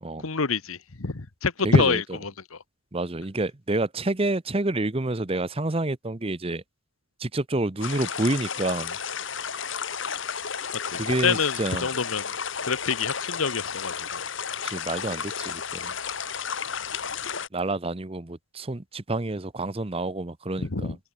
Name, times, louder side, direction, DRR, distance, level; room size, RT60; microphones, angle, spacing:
voice 1, 0.2-2.6 10.9-12.2 12.7-14.2 20.6-21.0, left 4 dB, 75° left, 1.2 m, -26 dB
voice 2, 1.6-2.0 2.9-6.6 7.2-9.0 11.0-11.9 14.6-15.9 17.5-21.0, right 2 dB, 25° right, 0.8 m, -28 dB
sound 1, 7.8-17.5, left 7 dB, 60° left, 1.7 m, -32 dB
open air
head